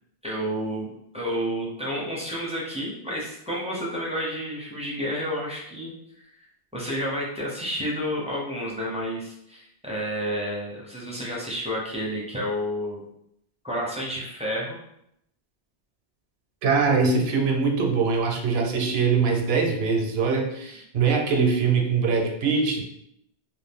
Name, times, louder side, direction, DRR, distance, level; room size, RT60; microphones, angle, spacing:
voice 1, 0.2-0.9 1.1-5.9 6.7-13.0 13.6-14.8, equal, 10° right, -5 dB, 0.4 m, -30 dB
voice 2, 16.6-22.8, right 5 dB, 70° right, 2 dB, 0.8 m, -22 dB
2.6 x 2.3 x 3.4 m, 0.75 s
omnidirectional pair, 1.2 m